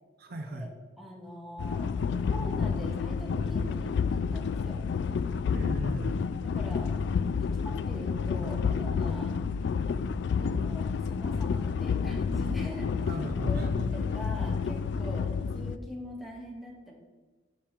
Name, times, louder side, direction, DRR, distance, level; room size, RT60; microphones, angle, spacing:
voice 1, 0.2-0.7 5.5-6.4 13.0-13.9, right 1 dB, 55° right, 6 dB, 0.6 m, -36 dB
voice 2, 1.0-4.8 6.4-6.9 7.6-9.3 10.4-13.1 13.5-16.9, left 1 dB, ahead, -2 dB, 1.6 m, -42 dB
sound 1, 1.6-15.8, left 5 dB, 65° left, 0.3 m, -29 dB
9.5 x 5.3 x 4.4 m, 1.3 s
head